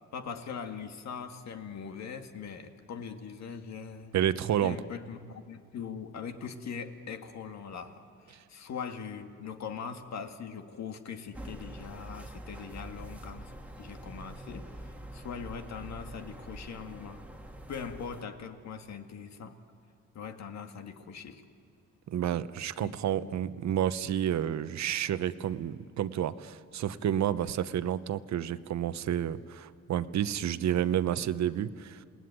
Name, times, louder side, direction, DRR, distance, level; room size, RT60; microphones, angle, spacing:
voice 1, 0.1-4.1 4.6-13.5 13.8-17.3 17.7-19.6 20.1-21.4 22.8-23.3, left 6 dB, 60° left, 6 dB, 2.0 m, -41 dB
voice 2, 4.1-4.8 22.1-32.0, right 10 dB, 65° right, 13 dB, 0.9 m, -30 dB
sound 1, 11.3-18.2, right 1 dB, 5° right, 1.8 m, -45 dB
28.5 x 19.5 x 9.4 m, 2.2 s
cardioid pair, 90°, 30 cm